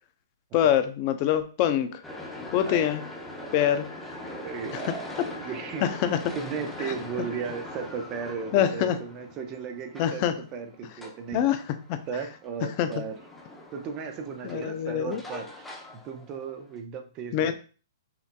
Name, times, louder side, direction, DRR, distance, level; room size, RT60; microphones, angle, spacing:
voice 1, 0.5-2.0 2.5-3.0 3.5-3.8 4.8-4.9 5.8-6.2 6.9-7.0 8.5-9.0 10.0-10.3 11.3-11.6 11.9-12.0 12.8-12.9 14.4-15.2 17.3-17.5, left 10 dB, 35° left, 9 dB, 0.5 m, -24 dB
sound 1, 2.0-16.8, left 1 dB, 5° left, 0.8 m, -42 dB
voice 2, 2.7-3.8 4.3-5.9 6.4-11.4 12.1-13.2 13.7-15.7 16.0-17.5, right 6 dB, 30° right, 5 dB, 0.7 m, -36 dB
5.8 x 2.6 x 2.3 m, 0.37 s
hypercardioid pair, 135°, 2 cm